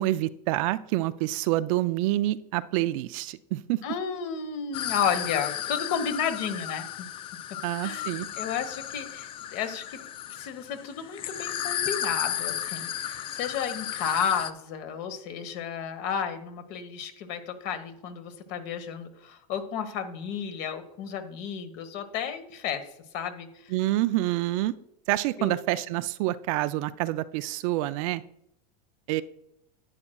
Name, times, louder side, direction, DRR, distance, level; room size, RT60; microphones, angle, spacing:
voice 1, 0.0-3.8 7.6-8.3 23.7-24.7 25.1-28.2 29.1-29.2, right 16 dB, 50° right, 14 dB, 0.4 m, -27 dB
voice 2, 3.8-7.1 7.5-10.0 10.3-22.9 23.1-23.7 25.4-25.5, left 7 dB, 50° left, 9 dB, 1.3 m, -32 dB
sound 1, 4.7-14.5, left 11 dB, 25° left, 0.3 m, -34 dB
11.0 x 8.9 x 2.3 m, 0.76 s
supercardioid pair, 135°, 21 cm